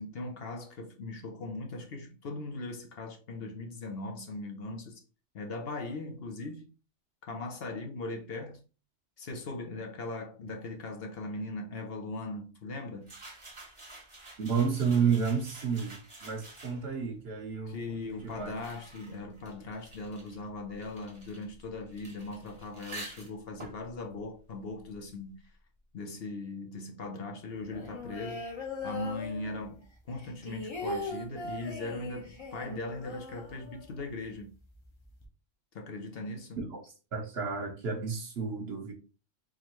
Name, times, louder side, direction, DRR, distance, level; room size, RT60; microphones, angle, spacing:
voice 1, 0.0-5.0 5.3-6.7 7.3-8.6 9.2-13.1 17.7-25.4 25.9-28.4 28.8-29.8 30.1-34.5 35.7-36.6, left 2 dB, 60° left, 0.9 m, -39 dB
sound 1, 13.0-17.0 17.8-25.2, right 1 dB, 25° right, 1.0 m, -49 dB
voice 2, 14.4-18.6 36.6-38.9, right 6 dB, 60° right, 1.1 m, -31 dB
sound 2, 27.7-29.8 30.1-34.1 34.4-34.5 34.7-35.2, left 2 dB, 25° left, 0.8 m, -40 dB
3.7 x 3.1 x 3.0 m
omnidirectional pair, 1.2 m